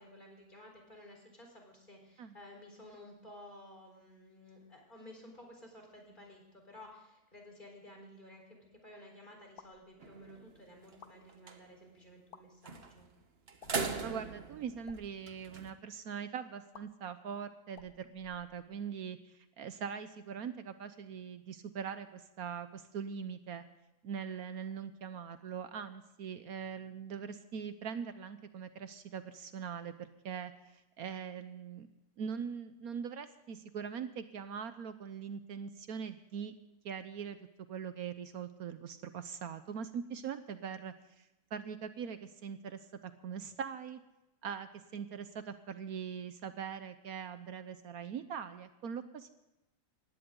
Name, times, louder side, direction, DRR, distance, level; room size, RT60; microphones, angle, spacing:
voice 1, 0.0-13.1, left 1 dB, 30° left, 1 dB, 4.4 m, -54 dB
sound 1, 9.6-9.9 10.9-11.2 12.2-12.4 13.6-14.0 14.7-15.0 16.7-16.8 17.7-18.9, left 7 dB, 80° left, 1.6 m, -56 dB
sound 2, 10.0-10.5 10.9-11.0 11.3-11.6 12.7-13.1 13.5-15.7, right 4 dB, 40° right, 1.4 m, -39 dB
voice 2, 14.0-23.6 24.0-31.9 32.2-36.5 36.8-37.4 37.7-44.0 44.4-49.3, right 7 dB, 70° right, 11 dB, 1.2 m, -42 dB
19.0 x 16.0 x 3.8 m, 0.94 s
omnidirectional pair, 1.7 m